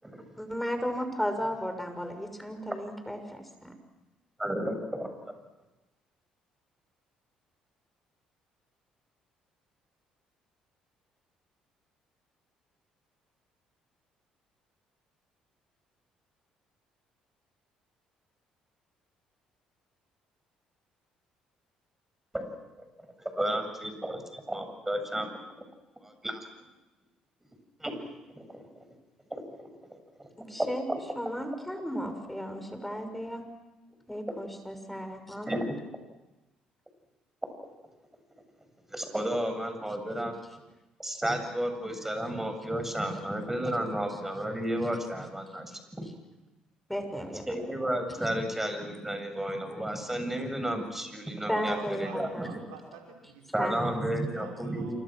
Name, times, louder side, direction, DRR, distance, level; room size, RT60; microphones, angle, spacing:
voice 1, 0.4-3.7 30.4-30.9 31.1-33.4 34.1-35.5 46.0-46.1 46.9-47.6 51.5-52.6 53.6-54.0, equal, 5° left, 7 dB, 6.4 m, -34 dB
voice 2, 4.4-5.1 22.3-22.5 23.2-25.3 26.0-26.4 27.8-28.0 28.4-28.8 29.3-29.7 30.6-31.0 35.5-35.7 38.9-40.4 41.0-45.7 46.0-46.1 47.5-52.5 53.5-55.0, right 1 dB, 10° right, 6 dB, 7.8 m, -32 dB
voice 3, 51.5-55.0, right 5 dB, 80° right, 1 dB, 5.1 m, -47 dB
28.0 x 25.5 x 6.4 m, 1.0 s
hypercardioid pair, 55°, 3 cm